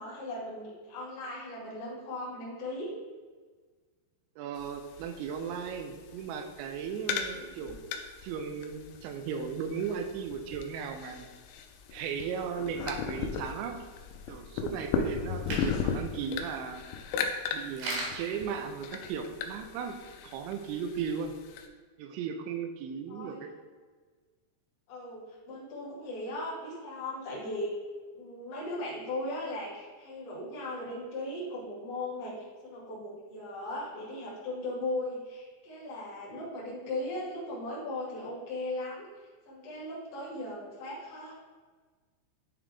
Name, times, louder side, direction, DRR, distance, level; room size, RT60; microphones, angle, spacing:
voice 1, 0.0-2.9 7.3-7.7 23.1-23.4 24.9-27.7 28.1-39.1 39.5-41.3, left 1 dB, 45° left, -7 dB, 2.1 m, -38 dB
voice 2, 4.4-7.8 8.2-11.3 11.9-13.8 14.3-16.9 17.5-20.0 20.2-21.4 22.0-23.5, right 6 dB, 85° right, 6 dB, 2.9 m, -36 dB
sound 1, 4.6-21.7, left 6 dB, 80° left, 2.8 m, -37 dB
sound 2, 11.3-19.4, right 1 dB, 70° right, 3.6 m, -44 dB
10.0 x 3.8 x 3.5 m, 1.4 s
omnidirectional pair, 5.4 m